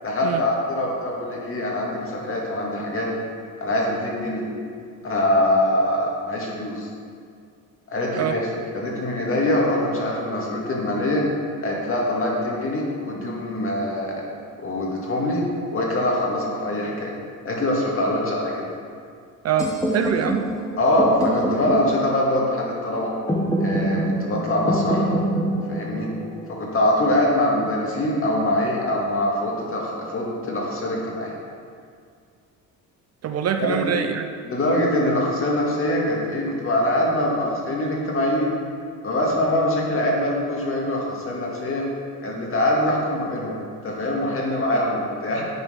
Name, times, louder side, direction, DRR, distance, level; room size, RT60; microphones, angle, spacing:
voice 1, 0.0-3.1 3.6-4.4 5.0-6.9 7.9-8.5 8.7-11.2 11.6-14.2 14.6-15.4 15.7-17.1 17.5-18.7 20.8-23.1 23.6-25.1 25.7-26.1 26.5-31.4 33.6-33.9 34.4-38.5 39.0-41.8 42.2-43.6 43.8-45.5, left 1 dB, 35° left, -2 dB, 2.0 m, -23 dB
voice 2, 19.4-20.4 33.2-34.3, right 8 dB, 45° right, 7 dB, 0.5 m, -24 dB
sound 1, 19.6-27.5, right 1 dB, 10° left, 1.1 m, -26 dB
9.7 x 4.5 x 5.7 m, 2.3 s
cardioid pair, 120°, 36 cm